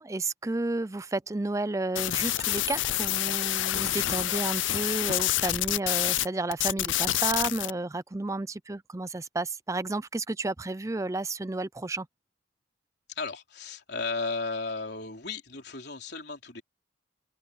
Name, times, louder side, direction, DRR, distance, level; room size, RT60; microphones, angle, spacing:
voice 1, 0.0-12.1, right 2 dB, 15° right, 0.4 m, -32 dB
sound 1, 2.0-6.3 6.5-7.7, left 14 dB, 75° left, 0.5 m, -27 dB
voice 2, 13.1-16.6, left 4 dB, 55° left, 4.1 m, -34 dB
open air
head